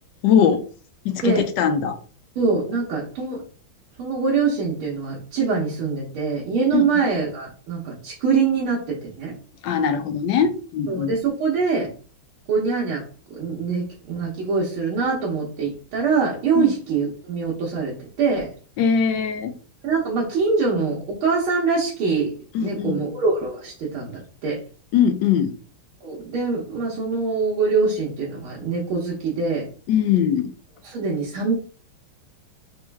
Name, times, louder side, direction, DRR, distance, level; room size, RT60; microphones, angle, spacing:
voice 1, 0.2-0.7 1.0-2.0 6.7-7.0 9.6-11.2 16.6-16.7 18.8-19.5 22.5-23.0 24.9-25.5 29.9-30.5, left 7 dB, 75° left, 10 dB, 1.1 m, -21 dB
voice 2, 2.4-3.4 4.0-9.3 10.9-11.9 12.5-13.0 13.3-18.5 19.8-22.3 22.6-24.6 26.0-29.7 30.8-31.5, right 4 dB, 80° right, -5 dB, 1.9 m, -24 dB
4.3 x 3.1 x 3.4 m, 0.39 s
omnidirectional pair, 2.3 m